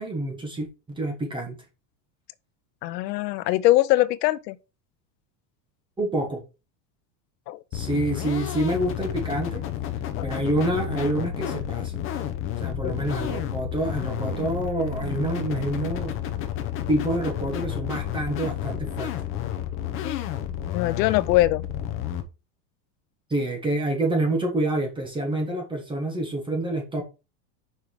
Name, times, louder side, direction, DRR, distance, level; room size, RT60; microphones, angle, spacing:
voice 1, 0.0-1.6 6.0-6.4 7.7-9.6 10.2-12.0 12.6-16.2 16.9-19.1 23.3-27.0, right 1 dB, 10° right, 1.3 m, -27 dB
voice 2, 2.8-4.6 7.5-7.6 10.2-10.3 12.8-13.1 20.0-20.3 20.7-21.6, left 16 dB, 85° left, 0.7 m, -22 dB
sound 1, 7.7-22.2, left 9 dB, 25° left, 0.7 m, -31 dB
5.6 x 4.9 x 4.5 m
supercardioid pair, 165°, 48 cm